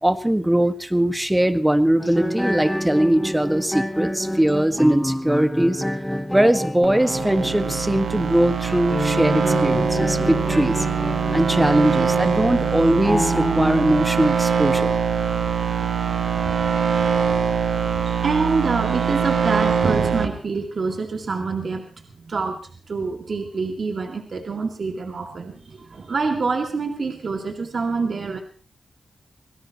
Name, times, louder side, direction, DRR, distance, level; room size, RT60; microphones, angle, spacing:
voice 1, 0.0-5.8 6.3-10.8 11.3-14.9, right 1 dB, 10° right, 9 dB, 1.6 m, -20 dB
sound 1, 2.0-13.8, equal, 10° left, 1.6 m, -28 dB
sound 2, 6.8-20.3, right 7 dB, 85° right, 1.9 m, -23 dB
voice 2, 18.1-28.4, right 4 dB, 60° right, 3 dB, 2.3 m, -26 dB
25.0 x 17.0 x 3.0 m, 0.39 s
cardioid pair, 55°, 0 cm